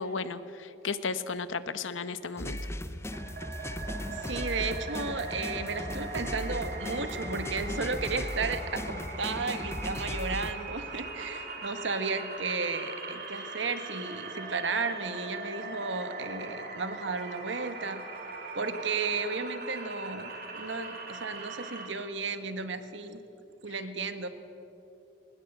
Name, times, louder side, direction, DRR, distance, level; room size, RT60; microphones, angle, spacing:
voice 1, 0.0-2.6, left 4 dB, 85° left, 13 dB, 1.0 m, -34 dB
sound 1, 2.4-10.5, left 1 dB, 15° left, 0.8 m, -37 dB
sound 2, 3.1-21.9, right 3 dB, 55° right, 3.3 m, -40 dB
voice 2, 4.1-18.0 18.5-23.2 23.6-24.3, right 4 dB, 70° right, 9 dB, 1.5 m, -34 dB
20.5 x 20.0 x 8.1 m, 2.9 s
head